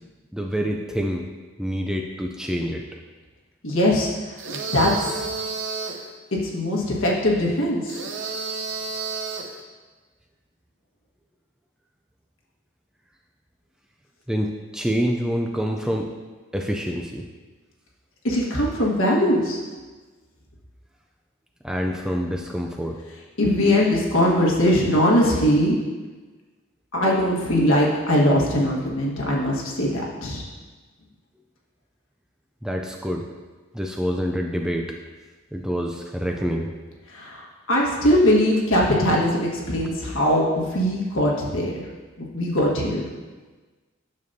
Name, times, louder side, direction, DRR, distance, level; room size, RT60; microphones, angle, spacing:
voice 1, 0.3-1.3 1.6-2.8 14.3-16.1 16.5-17.3 21.6-23.0 32.6-33.3 33.7-35.0 35.5-36.7, equal, 5° right, 2 dB, 0.3 m, -26 dB
voice 2, 3.6-4.1 4.5-4.9 6.5-8.0 18.2-19.6 23.4-25.8 26.9-30.4 37.1-41.8 42.3-43.0, equal, 65° left, -3 dB, 1.5 m, -21 dB
sound 1, 4.4-6.1 7.9-9.6, right 4 dB, 55° right, 0.7 m, -31 dB
9.3 x 6.8 x 2.7 m, 1.3 s
head